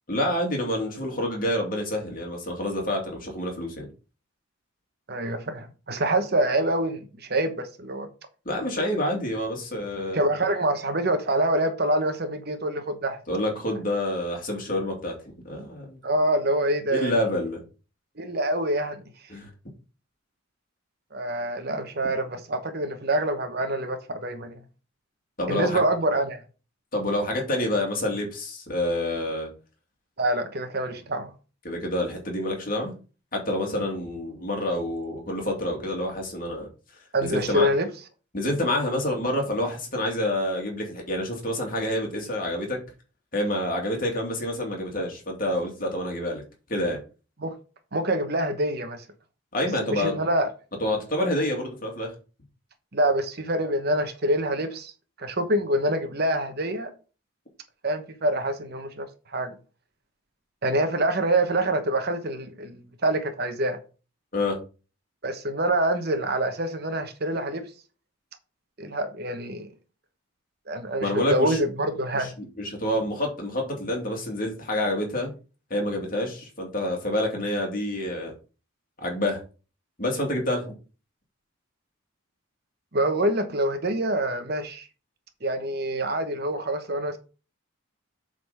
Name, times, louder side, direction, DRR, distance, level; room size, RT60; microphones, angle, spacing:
voice 1, 0.1-3.9 8.4-10.2 13.3-15.1 15.4-16.0 16.9-17.6 19.3-19.5 25.4-25.8 26.9-29.5 31.6-32.9 33.3-36.7 37.2-37.7 38.3-42.8 43.3-46.4 46.7-47.0 49.5-50.1 50.8-52.1 64.3-64.6 71.0-71.6 72.2-75.3 75.7-78.3 79.0-79.4 80.0-80.7, left 1 dB, 45° left, 2.5 m, -28 dB
voice 2, 5.1-8.1 10.1-13.2 16.0-17.1 18.2-19.0 21.1-24.6 25.5-26.4 30.2-31.3 37.1-37.9 47.4-47.5 47.9-49.0 49.8-50.5 52.9-54.9 55.2-56.9 57.8-59.6 60.6-63.8 65.2-67.6 68.8-69.7 70.7-72.3 82.9-84.9 85.4-87.2, right 1 dB, 50° right, 1.0 m, -26 dB
7.9 x 4.0 x 5.5 m
head